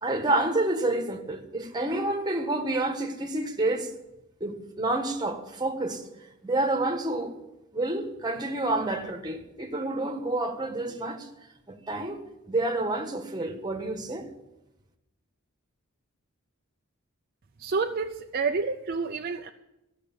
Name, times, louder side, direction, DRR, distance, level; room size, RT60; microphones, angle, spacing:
voice 1, 0.0-3.9 4.4-6.0 6.4-7.3 7.7-11.3 11.7-12.2 12.5-14.3, right 2 dB, 20° right, 1.3 m, -29 dB
voice 2, 17.6-19.5, right 4 dB, 45° right, 0.5 m, -29 dB
15.0 x 6.5 x 8.8 m
head